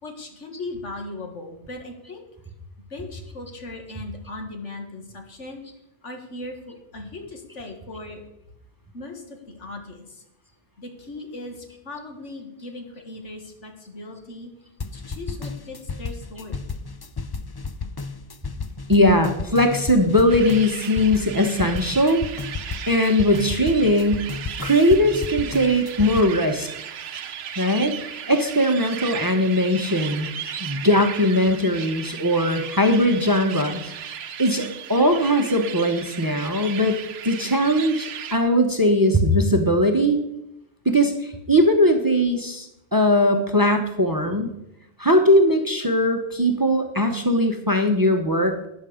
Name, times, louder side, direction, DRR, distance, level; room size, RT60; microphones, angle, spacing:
voice 1, 0.0-2.2 2.9-5.6 6.0-8.2 8.9-10.2 10.8-14.5 14.9-16.6, left 2 dB, 80° left, 4 dB, 2.1 m, -38 dB
sound 1, 14.8-26.2, left 4 dB, 40° left, 0.3 m, -33 dB
voice 2, 18.9-22.2 22.9-24.2 24.6-26.7 27.6-30.3 30.6-33.9 34.4-40.2 40.8-44.5 45.0-48.7, equal, 20° right, 5 dB, 0.9 m, -20 dB
sound 2, 20.3-38.4, right 8 dB, 60° right, 0.9 m, -36 dB
13.0 x 9.4 x 5.1 m, 0.85 s
omnidirectional pair, 1.2 m